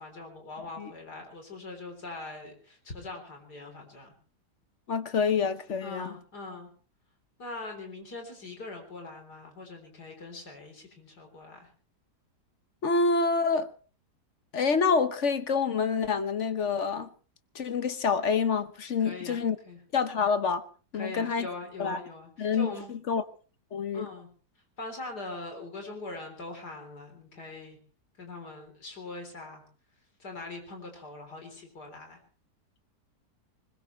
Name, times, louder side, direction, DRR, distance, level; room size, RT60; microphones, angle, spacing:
voice 1, 0.0-4.1 5.8-6.7 7.4-11.7 19.0-19.8 20.9-22.9 23.9-24.3 24.8-27.8 28.2-29.6 30.2-32.2, left 2 dB, 70° left, 4.3 m, -42 dB
voice 2, 4.9-6.1 12.8-13.7 14.5-17.1 17.5-19.6 19.9-20.7 20.9-21.5 21.8-22.0 22.4-23.2 23.7-24.1, left 5 dB, 50° left, 1.2 m, -27 dB
21.0 x 21.0 x 3.2 m
omnidirectional pair, 1.8 m